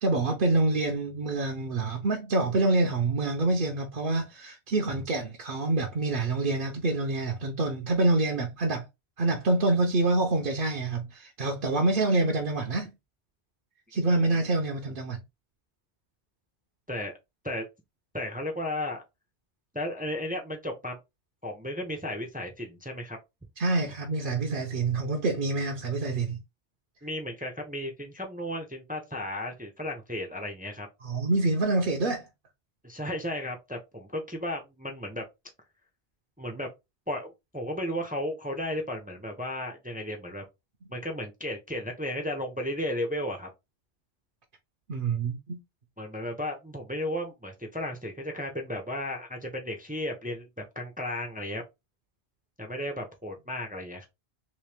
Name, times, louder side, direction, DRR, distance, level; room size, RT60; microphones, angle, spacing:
voice 1, 0.0-8.9 9.2-12.9 13.9-15.2 23.6-26.4 31.0-32.2 44.9-45.6, right 2 dB, 60° right, 0.8 m, -26 dB
voice 2, 18.1-19.0 19.7-21.0 21.4-23.2 27.0-30.9 32.8-35.2 36.4-36.7 37.1-40.4 40.9-43.5 46.0-51.6 52.6-54.1, left 1 dB, 10° right, 0.6 m, -34 dB
3.1 x 3.1 x 3.3 m
omnidirectional pair, 1.1 m